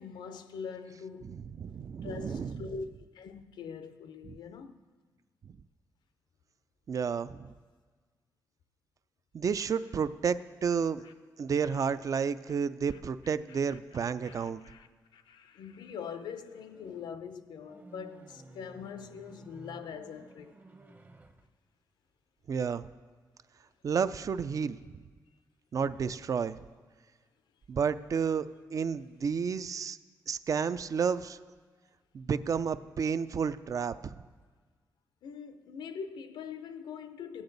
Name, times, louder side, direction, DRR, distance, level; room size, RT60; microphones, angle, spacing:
voice 1, 0.0-1.3 2.0-2.9 3.1-4.8 11.0-11.1 11.6-11.9 12.9-13.0 13.2-14.9 15.1-20.5 25.7-26.0 35.2-37.4, left 6 dB, 90° left, 0.6 m, -43 dB
voice 2, 1.3-2.6 4.2-4.3 6.9-7.5 9.3-11.0 11.4-14.6 22.5-22.8 23.8-25.0 25.7-26.6 27.7-28.5 28.7-30.0 30.3-31.4 32.1-34.2, right 6 dB, 50° right, 0.4 m, -31 dB
sound 1, 14.2-14.5 16.3-21.5, right 2 dB, 25° right, 0.8 m, -54 dB
16.5 x 8.7 x 4.0 m
cardioid pair, 90°, 7 cm